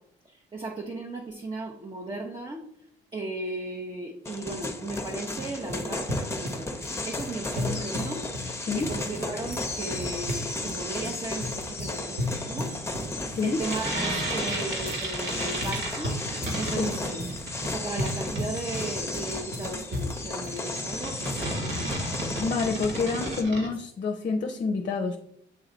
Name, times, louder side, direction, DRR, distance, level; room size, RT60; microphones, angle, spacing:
voice 1, 0.2-2.6 3.1-6.8 7.1-16.2 16.5-17.3 17.6-22.3 23.2-23.3, right 2 dB, 25° right, 1 dB, 0.8 m, -36 dB
sound 1, 4.2-23.4, left 2 dB, 15° left, 0.8 m, -34 dB
sound 2, 4.9-20.6, equal, 50° right, 1.6 m, -36 dB
voice 2, 13.2-13.6 16.8-17.0 22.4-25.2, left 4 dB, 40° left, 4 dB, 0.6 m, -27 dB
sound 3, 13.6-23.7, right 2 dB, 70° right, 1.7 m, -33 dB
8.1 x 3.1 x 3.9 m, 0.71 s
cardioid pair, 90°, 20 cm